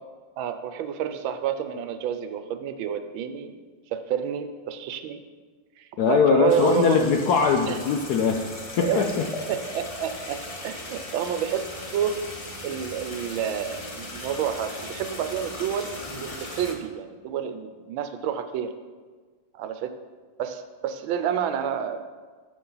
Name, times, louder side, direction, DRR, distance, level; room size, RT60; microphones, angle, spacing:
voice 1, 0.4-3.6 3.9-5.2 5.8-7.1 7.7-7.8 8.8-9.1 9.5-10.4 10.6-12.1 12.6-18.7 19.5-19.9 20.4-22.0, right 8 dB, 80° right, 9 dB, 1.4 m, -29 dB
voice 2, 6.0-8.4 8.8-9.3, left 6 dB, 75° left, 4 dB, 0.9 m, -21 dB
sound 1, 6.5-16.7, left 1 dB, 40° left, 0.5 m, -38 dB
10.0 x 7.3 x 3.9 m, 1.4 s
omnidirectional pair, 2.2 m